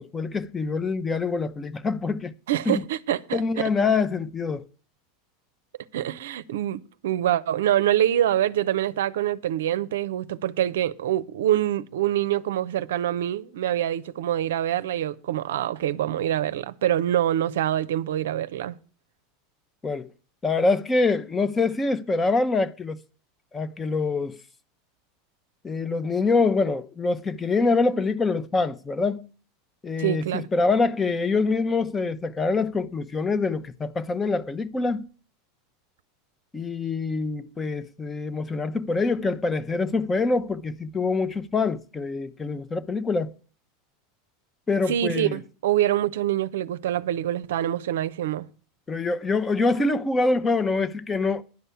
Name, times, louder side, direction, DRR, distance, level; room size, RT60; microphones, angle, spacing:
voice 1, 0.0-2.3 2.7-2.8 3.3-4.6 19.8-20.1 20.4-23.0 23.5-24.4 25.6-29.3 29.8-35.1 36.5-43.3 44.7-45.4 48.9-51.4, left 3 dB, 20° left, 0.7 m, -25 dB
voice 2, 2.5-3.4 5.9-18.7 30.0-30.5 44.9-48.5, right 12 dB, 75° right, 0.5 m, -25 dB
10.5 x 5.5 x 8.3 m
hypercardioid pair, 95°, 0 cm